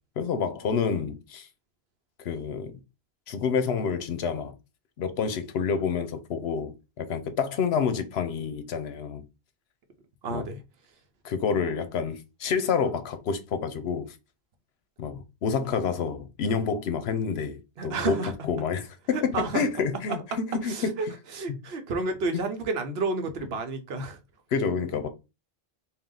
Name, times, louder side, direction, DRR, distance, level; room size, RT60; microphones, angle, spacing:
voice 1, 0.2-1.5 2.2-2.8 3.3-4.5 5.0-9.2 10.3-10.5 11.2-14.1 15.0-20.9 21.5-21.6 24.5-25.1, left 6 dB, 75° left, 0.9 m, -28 dB
voice 2, 10.2-10.6 17.8-18.3 19.1-19.6 20.6-24.2, right 3 dB, 75° right, 1.0 m, -31 dB
3.6 x 2.4 x 3.7 m
omnidirectional pair, 1.1 m